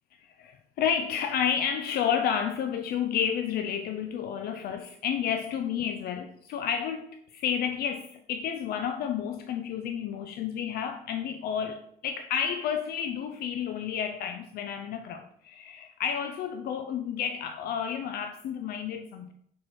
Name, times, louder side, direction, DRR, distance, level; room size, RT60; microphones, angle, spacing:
voice 1, 0.2-19.3, left 8 dB, 65° left, 6 dB, 0.5 m, -31 dB
6.4 x 4.4 x 4.3 m, 0.69 s
cardioid pair, 110°, 17 cm